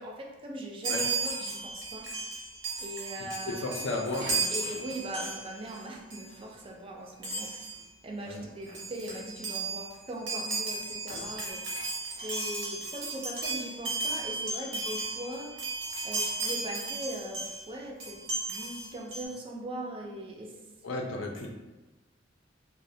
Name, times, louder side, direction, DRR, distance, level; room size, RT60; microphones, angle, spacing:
voice 1, 0.0-2.1 2.8-3.8 4.5-7.7 8.0-11.6 12.2-15.6 16.0-18.2 18.5-20.6, right 1 dB, 30° right, 0 dB, 0.4 m, -40 dB
Chime, 0.8-5.8 6.1-6.3 7.2-7.8 8.4-8.5 8.7-17.7 18.0-19.2, right 3 dB, 85° right, 0.7 m, -35 dB
voice 2, 3.5-4.3 8.3-8.4 20.8-21.5, left 2 dB, 75° left, 1 dB, 0.5 m, -33 dB
2.3 x 2.1 x 2.6 m, 1.1 s
head